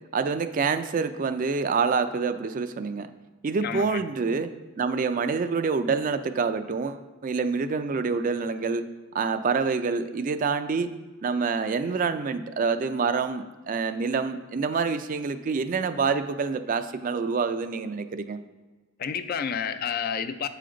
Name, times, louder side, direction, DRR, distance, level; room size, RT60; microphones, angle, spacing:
voice 1, 0.1-3.1 3.4-4.5 4.8-8.8 9.1-10.9 11.2-18.4, right 5 dB, 40° right, 10 dB, 0.3 m, -27 dB
voice 2, 3.6-4.0 19.0-20.5, left 7 dB, 45° left, 11 dB, 0.3 m, -30 dB
7.6 x 5.0 x 3.8 m, 1.3 s
head